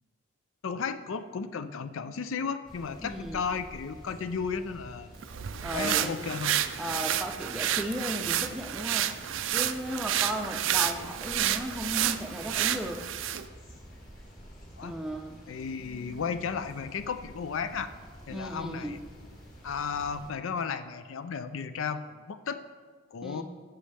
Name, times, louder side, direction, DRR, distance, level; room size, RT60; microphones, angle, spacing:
voice 1, 0.6-5.1 5.7-6.5 14.8-15.0 15.5-17.9 18.3-19.0 19.6-22.6 23.1-23.4, left 6 dB, 70° left, 11 dB, 0.4 m, -34 dB
sound 1, 2.6-20.3, equal, 40° left, 2.1 m, -49 dB
voice 2, 3.0-3.4 5.6-6.4 6.8-9.1 9.5-13.0 14.8-15.4 18.3-19.0 23.2-23.4, equal, 5° right, 3 dB, 0.5 m, -35 dB
sound 2, 5.2-13.5, right 11 dB, 65° right, 0.4 m, -30 dB
15.0 x 6.3 x 3.4 m, 1.5 s
head